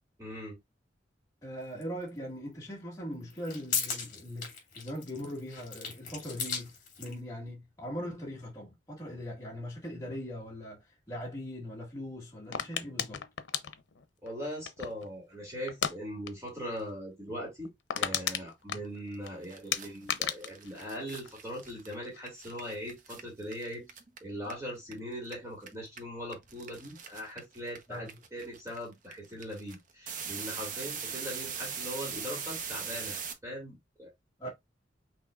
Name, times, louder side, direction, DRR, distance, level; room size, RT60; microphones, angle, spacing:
voice 1, 0.2-0.6 14.2-17.7 18.0-23.8 24.2-34.1 34.4-34.5, equal, 15° right, 2.7 m, -40 dB
voice 2, 1.4-13.2 18.7-18.8 27.9-28.2 34.4-34.5, equal, 20° left, 1.7 m, -40 dB
sound 1, 1.8-1.9 3.2-7.2, left 6 dB, 45° left, 2.5 m, -37 dB
sound 2, 12.5-15.1 15.7-16.0 16.2-16.5 16.8-16.9 17.3-17.4 17.6-19.3 19.7-21.7 22.0-22.5, left 8 dB, 90° left, 0.7 m, -34 dB
sound 3, 19.1-19.2 19.4-24.9 25.2-33.3, right 6 dB, 50° right, 0.9 m, -40 dB
5.9 x 3.6 x 2.4 m
head